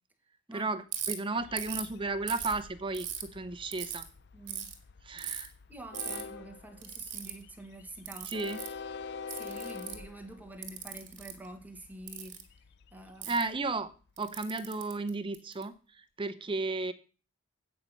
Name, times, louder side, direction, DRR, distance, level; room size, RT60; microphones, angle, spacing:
voice 1, 0.5-4.1 5.0-5.5 8.3-8.6 13.3-13.9 14.2-16.9, right 3 dB, 25° right, 12 dB, 0.7 m, -34 dB
Ratchet pawl, 0.9-1.1 1.6-1.9 2.3-3.2 3.7-4.0 4.5-4.7 5.2-5.5 5.9-6.2 6.8-7.3 8.1-8.7 9.3-10.1 10.6-11.3 12.1-12.4 13.2-13.4 14.2-15.6, right 10 dB, 60° right, 1.9 m, -38 dB
Train, 1.4-14.4, left 5 dB, 55° left, 0.5 m, -47 dB
voice 2, 4.3-4.7 5.7-8.3 9.3-12.4 12.9-13.4, right 1 dB, 10° right, 5 dB, 1.3 m, -47 dB
8.6 x 5.2 x 7.3 m, 0.37 s
head